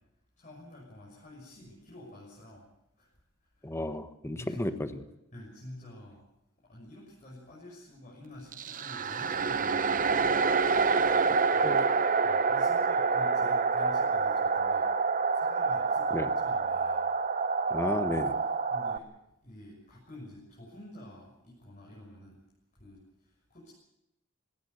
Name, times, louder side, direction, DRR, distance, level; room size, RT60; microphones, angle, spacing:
voice 1, 0.4-2.7 3.0-3.1 3.6-3.7 4.3-4.6 5.3-6.2 6.6-10.7 11.5-11.8 12.1-14.9 15.3-17.1 18.7-19.1 19.4-22.3 22.8-23.0 23.5-23.7, left 1 dB, 40° left, -4 dB, 6.6 m, -49 dB
voice 2, 3.6-5.1 11.6-11.9 16.1-16.3 17.7-18.4, left 1 dB, 15° left, 9 dB, 1.2 m, -33 dB
sound 1, 8.5-19.0, right 4 dB, 40° right, 0.8 m, -27 dB
20.0 x 17.5 x 8.2 m, 0.90 s
head